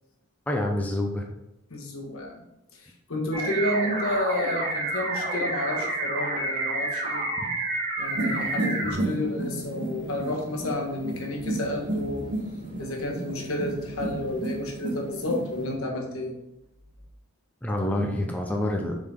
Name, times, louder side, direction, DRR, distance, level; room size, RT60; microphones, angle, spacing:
voice 1, 0.5-1.2 9.0-9.1 17.6-19.0, left 1 dB, 5° left, 1 dB, 0.6 m, -27 dB
voice 2, 1.7-2.4 2.7-7.2 8.0-12.4 12.8-16.3, left 1 dB, 85° left, 1 dB, 1.4 m, -31 dB
sound 1, 3.3-8.9, right 2 dB, 35° right, 1.4 m, -29 dB
sound 2, 8.1-15.7, right 1 dB, 55° right, 1.5 m, -32 dB
7.0 x 3.9 x 3.5 m, 0.86 s
head